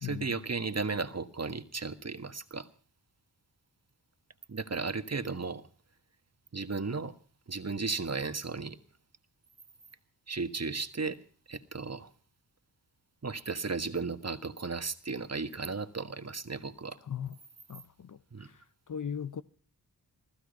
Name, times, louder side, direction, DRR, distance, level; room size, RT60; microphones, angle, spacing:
voice 1, 0.0-2.7 4.5-5.6 6.5-7.1 7.5-8.8 10.3-11.2 11.5-12.1 13.2-17.0 18.3-18.5, right 4 dB, 40° right, 1.6 m, -35 dB
voice 2, 17.7-18.2 18.9-19.4, left 8 dB, 50° left, 0.7 m, -37 dB
15.5 x 15.0 x 5.3 m
cardioid pair, 40°, 41 cm